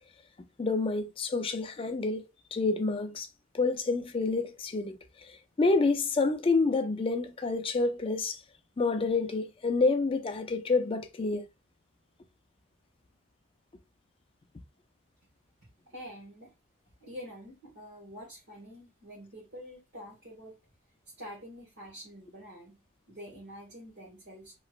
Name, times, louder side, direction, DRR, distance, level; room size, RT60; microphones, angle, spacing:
voice 1, 0.6-3.3 3.5-5.0 5.3-8.4 8.8-11.4, left 3 dB, 25° left, 0.4 m, -28 dB
voice 2, 15.9-16.5 17.0-20.6 21.2-22.8 23.1-24.5, equal, 55° right, 1.4 m, -46 dB
3.1 x 2.9 x 2.4 m
head